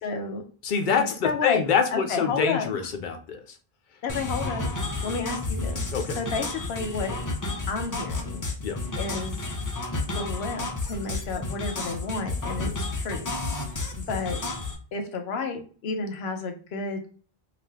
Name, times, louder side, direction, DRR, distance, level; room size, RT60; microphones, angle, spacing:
voice 1, 0.0-0.4 1.0-1.6 1.9-2.7 4.0-4.7 5.0-5.8 6.2-7.2 7.7-8.4 9.0-9.4 10.1-13.3 14.0-14.5 14.9-17.0, left 4 dB, 85° left, 4 dB, 0.9 m, -31 dB
voice 2, 0.6-3.4 5.9-6.2 8.6-8.8, left 6 dB, 60° left, 5 dB, 0.7 m, -25 dB
sound 1, 4.1-14.7, left 2 dB, 35° left, 0.3 m, -31 dB
2.4 x 2.4 x 3.3 m, 0.39 s
omnidirectional pair, 1.0 m